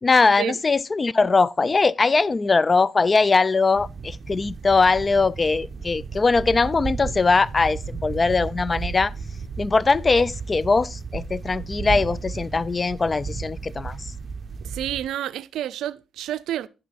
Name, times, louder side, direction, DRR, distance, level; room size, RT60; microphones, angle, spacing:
voice 1, 0.0-9.1 9.6-14.0, left 4 dB, 30° left, 0.3 m, -21 dB
sound 1, 3.7-15.1, right 5 dB, 35° right, 0.9 m, -34 dB
voice 2, 14.6-16.7, right 12 dB, 80° right, 0.4 m, -29 dB
10.0 x 5.8 x 4.1 m
cardioid pair, 75°, 0 cm